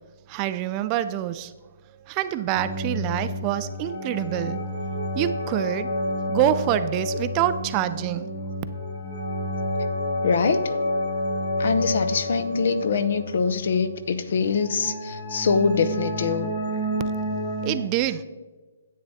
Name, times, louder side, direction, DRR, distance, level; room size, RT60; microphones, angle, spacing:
voice 1, 0.3-1.5 2.1-4.6 5.1-5.9 6.3-8.3 17.6-18.2, right 12 dB, 20° right, 12 dB, 0.3 m, -26 dB
sound 1, 2.5-17.7, left 1 dB, 85° left, 2.8 m, -29 dB
voice 2, 10.2-10.6 11.6-16.6, left 5 dB, 55° left, 13 dB, 0.7 m, -24 dB
10.5 x 8.0 x 4.1 m, 1.3 s
hypercardioid pair, 165°, 0 cm